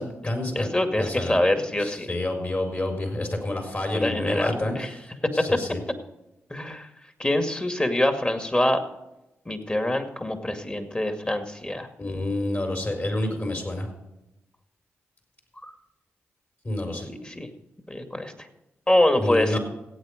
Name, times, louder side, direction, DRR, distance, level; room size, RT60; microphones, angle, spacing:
voice 1, 0.0-1.4 1.8-4.7 5.4-5.8 12.0-13.9 16.6-17.1 19.2-19.6, left 1 dB, 40° left, 4 dB, 4.6 m, -29 dB
voice 2, 0.5-2.1 3.9-4.9 5.4-5.6 6.5-6.9 7.2-8.8 9.5-11.9 15.6-15.7 17.1-17.5 17.9-18.3 18.9-19.6, left 1 dB, 20° left, 7 dB, 2.2 m, -25 dB
16.0 x 8.7 x 5.2 m, 0.93 s
supercardioid pair, 40°, 5 cm